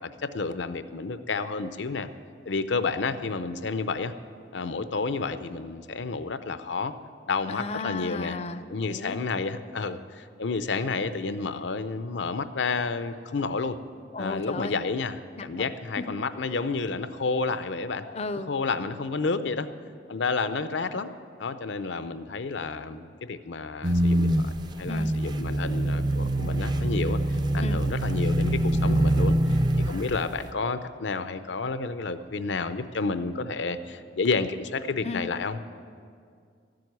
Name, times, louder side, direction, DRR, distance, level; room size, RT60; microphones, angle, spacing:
voice 1, 0.0-2.1 2.5-4.1 4.5-6.9 7.3-8.4 8.7-13.8 14.2-18.0 18.5-19.7 20.1-21.1 21.4-24.4 24.8-35.6, left 4 dB, 75° left, 11 dB, 0.6 m, -30 dB
voice 2, 7.5-9.2 14.1-14.8 15.4-15.7 16.0-16.1 18.0-18.5 24.9-25.1 27.6-27.8 35.0-35.2, left 3 dB, 35° left, 12 dB, 0.5 m, -34 dB
sound 1, 23.8-30.3, right 1 dB, 25° right, 0.4 m, -24 dB
13.5 x 7.8 x 9.3 m, 2.2 s
head